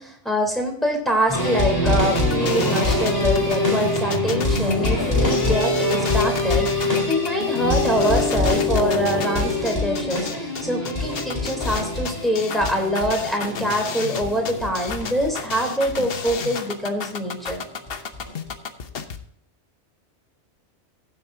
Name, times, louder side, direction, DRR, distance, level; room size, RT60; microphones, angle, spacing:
voice 1, 0.0-17.6, equal, ahead, 0 dB, 3.4 m, -25 dB
sound 1, 1.3-15.9 16.3-16.4 16.7-16.8 17.5-17.6 17.9-18.5 19.1-19.2, left 2 dB, 20° left, 4.2 m, -24 dB
sound 2, 2.2-19.2, left 6 dB, 55° left, 1.1 m, -33 dB
15.5 x 7.8 x 2.7 m, 0.66 s
omnidirectional pair, 1.2 m